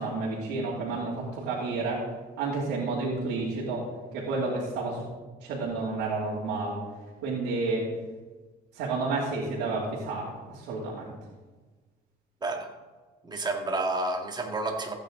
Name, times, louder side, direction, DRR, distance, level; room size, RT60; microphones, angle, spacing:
voice 1, 0.0-2.1 2.4-3.9 4.1-5.1 5.4-6.8 7.2-7.9 8.7-11.1, right 3 dB, 85° right, -5 dB, 2.7 m, -30 dB
voice 2, 13.2-14.9, right 2 dB, 25° right, 3 dB, 2.0 m, -30 dB
15.5 x 9.2 x 3.9 m, 1.3 s
cardioid pair, 110°, 17 cm